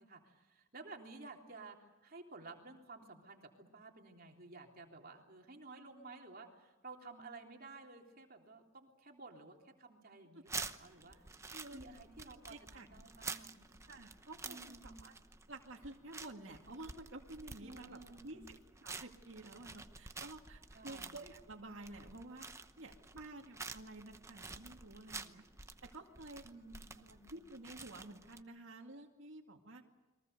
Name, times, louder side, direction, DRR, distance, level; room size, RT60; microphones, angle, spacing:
voice 1, 0.0-11.2 11.7-13.7 14.4-15.0 17.6-18.5 20.7-21.1 26.4-27.3, right 3 dB, 45° right, 2 dB, 3.4 m, -54 dB
sound 1, 10.4-28.4, right 4 dB, 15° right, 0.8 m, -50 dB
voice 2, 12.3-12.9 13.9-15.1 15.5-22.5 22.8-25.4 25.8-26.4 27.0-29.8, right 2 dB, 65° right, 0 dB, 2.3 m, -51 dB
29.5 x 23.0 x 6.8 m, 1.1 s
head